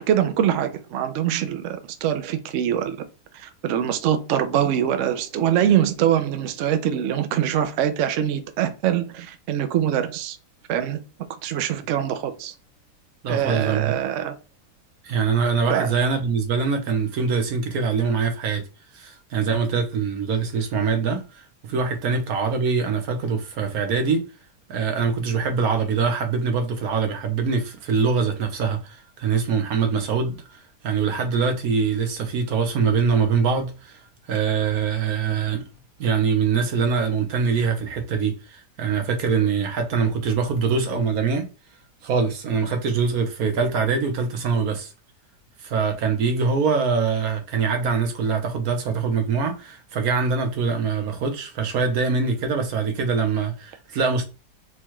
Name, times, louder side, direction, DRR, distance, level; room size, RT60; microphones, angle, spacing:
voice 1, 0.0-3.0 3.3-10.4 10.7-11.0 11.4-12.5 13.3-14.4 15.7-15.9, right 10 dB, 85° right, 0.6 m, -23 dB
voice 2, 13.2-14.0 15.0-18.6 18.9-21.2 21.7-24.2 24.7-34.0 34.3-35.6 36.0-41.5 42.0-44.9 45.6-54.2, right 5 dB, 65° right, 1.2 m, -23 dB
4.5 x 2.3 x 2.9 m
omnidirectional pair, 1.8 m